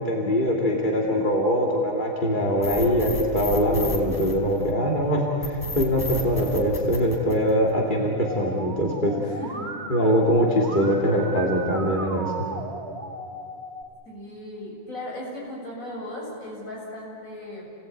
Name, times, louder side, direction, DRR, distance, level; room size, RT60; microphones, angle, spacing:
voice 1, 0.0-9.1 9.9-12.3, equal, 35° left, -1 dB, 2.7 m, -22 dB
sound 1, 2.6-4.9 5.4-7.9, left 1 dB, 15° left, 4.6 m, -32 dB
Musical instrument, 8.3-13.8, right 2 dB, 50° right, 2.5 m, -36 dB
voice 2, 9.1-9.7 14.0-17.7, left 1 dB, 70° left, -4 dB, 8.3 m, -37 dB
30.0 x 18.5 x 9.2 m, 2.6 s
omnidirectional pair, 1.5 m